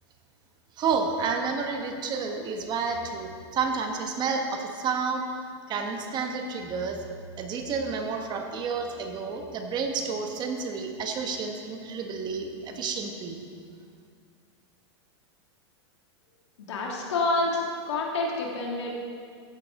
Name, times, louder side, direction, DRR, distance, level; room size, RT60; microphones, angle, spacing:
voice 1, 0.8-5.3 5.7-7.0 7.4-13.4, right 5 dB, 30° right, 4 dB, 1.3 m, -30 dB
voice 2, 16.7-18.9, left 2 dB, 80° left, -1 dB, 2.4 m, -28 dB
14.5 x 8.3 x 3.7 m, 2.1 s
hypercardioid pair, 130°, 14 cm